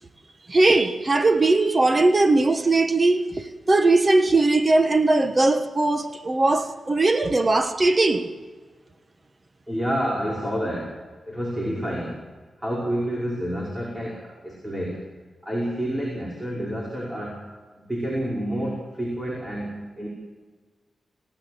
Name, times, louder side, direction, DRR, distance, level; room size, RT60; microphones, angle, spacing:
voice 1, 0.5-8.3, right 2 dB, 30° right, 1.4 m, -19 dB
voice 2, 9.7-12.2 12.6-15.0 15.4-17.5 17.9-20.1, equal, 10° right, 5.3 m, -29 dB
28.0 x 17.5 x 8.0 m
wide cardioid pair, 125°, 0 cm